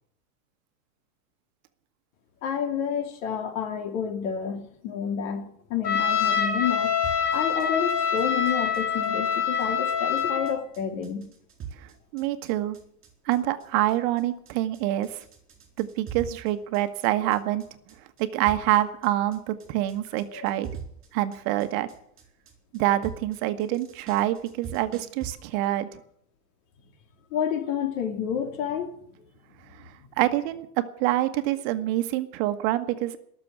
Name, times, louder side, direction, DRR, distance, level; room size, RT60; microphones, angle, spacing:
voice 1, 2.4-6.9 7.3-11.3 20.3-20.4 27.3-28.9, left 8 dB, 55° left, 2.8 m, -29 dB
Trumpet, 5.8-10.6, left 7 dB, 90° left, 3.4 m, -25 dB
sound 1, 7.0-25.3, right 7 dB, 25° right, 4.5 m, -43 dB
voice 2, 11.8-12.8 13.2-15.2 15.8-17.6 18.2-20.7 21.1-21.9 22.7-26.0 29.7-29.8 30.2-33.2, right 14 dB, 45° right, 1.4 m, -26 dB
18.5 x 7.0 x 9.9 m
hypercardioid pair, 125°, 45 cm